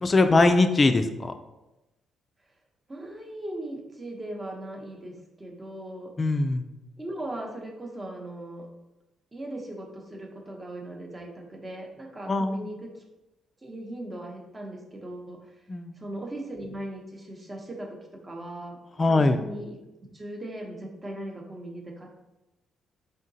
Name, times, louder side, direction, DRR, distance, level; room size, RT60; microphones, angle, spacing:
voice 1, 0.0-1.3 6.2-6.6 12.3-12.7 15.7-15.9 19.0-19.4, left 2 dB, 30° left, 7 dB, 0.3 m, -21 dB
voice 2, 2.9-6.1 7.0-8.7 9.3-13.0 13.6-15.6 16.0-22.2, right 1 dB, 20° right, 1 dB, 0.8 m, -39 dB
3.7 x 3.6 x 2.7 m, 0.98 s
cardioid pair, 90°, 0 cm